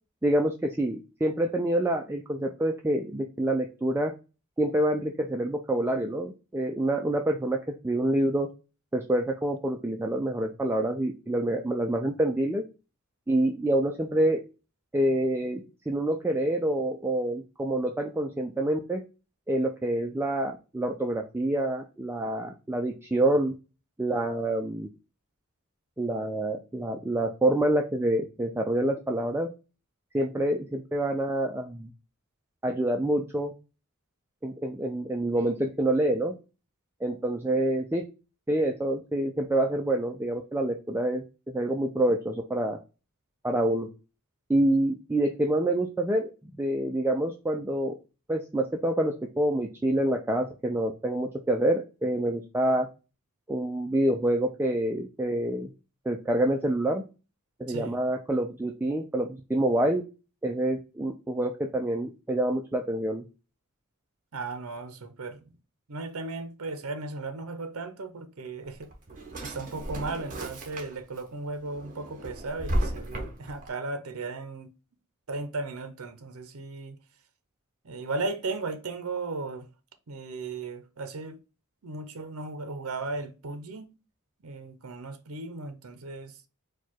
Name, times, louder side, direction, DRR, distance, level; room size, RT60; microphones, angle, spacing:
voice 1, 0.2-4.1 4.6-8.5 8.9-12.6 13.3-14.4 14.9-19.0 19.5-23.5 24.0-24.9 26.0-29.5 30.1-31.9 32.6-33.5 34.4-36.3 37.0-38.0 38.5-42.8 43.4-43.9 44.5-46.3 46.6-47.9 48.3-52.9 53.5-55.7 56.1-57.0 57.6-60.0 60.4-63.2, right 1 dB, 10° right, 0.3 m, -27 dB
voice 2, 57.7-58.0 64.3-65.6 65.9-68.9 69.4-74.7 75.3-77.0 77.8-79.7 80.1-81.4 81.8-83.9 84.4-86.5, right 3 dB, 65° right, 0.7 m, -36 dB
Drawer open or close, 68.6-71.2 71.6-73.7, right 1 dB, 40° right, 1.1 m, -34 dB
4.6 x 2.3 x 4.3 m
head